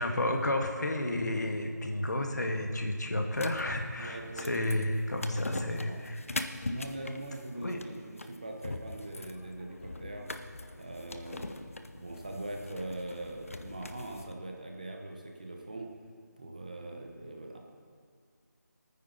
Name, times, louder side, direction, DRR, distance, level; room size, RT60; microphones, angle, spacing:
voice 1, 0.0-6.2 7.6-7.8, left 1 dB, 65° left, 3 dB, 1.6 m, -31 dB
sound 1, 3.3-14.3, left 2 dB, 45° left, 0.7 m, -42 dB
voice 2, 4.0-4.6 5.3-6.0 6.6-10.3 10.7-11.5 11.9-15.9 16.4-17.6, right 1 dB, 25° right, 2 dB, 0.9 m, -41 dB
20.0 x 9.5 x 4.0 m, 2.1 s
figure-of-eight pair, 175°, 10 cm